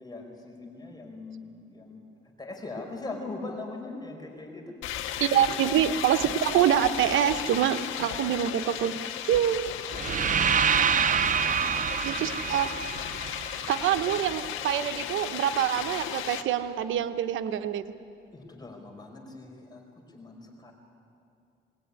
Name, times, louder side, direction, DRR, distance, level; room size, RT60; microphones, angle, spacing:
voice 1, 0.0-2.0 2.4-5.7 8.0-8.4 10.8-11.7 18.3-19.8 20.1-20.7, left 3 dB, 20° left, 1 dB, 4.9 m, -41 dB
sound 1, 4.8-16.4, left 10 dB, 90° left, 1.4 m, -35 dB
voice 2, 5.2-9.7 12.0-12.7 13.7-17.9, right 10 dB, 80° right, 10 dB, 0.9 m, -26 dB
sound 2, 9.9-14.0, right 7 dB, 40° right, 0.7 m, -26 dB
21.0 x 19.5 x 9.8 m, 2.5 s
cardioid pair, 90°, 20 cm